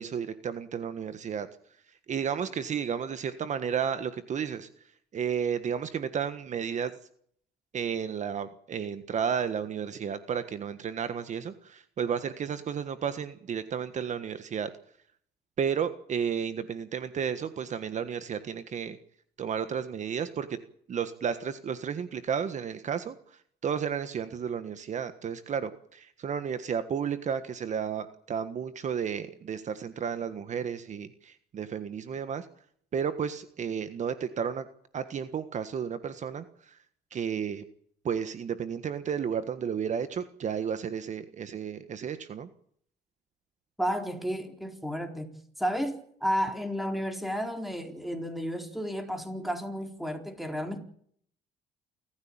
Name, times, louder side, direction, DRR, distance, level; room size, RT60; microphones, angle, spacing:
voice 1, 0.0-1.5 2.1-4.7 5.1-6.9 7.7-14.7 15.6-19.0 19.4-20.6 20.9-23.1 23.6-32.5 32.9-34.6 34.9-36.8 37.1-37.6 38.0-42.5, right 7 dB, 45° right, 1.5 m, -32 dB
voice 2, 43.8-45.3 45.6-50.8, equal, ahead, 4.1 m, -32 dB
28.0 x 14.5 x 8.9 m
cardioid pair, 110°, 17 cm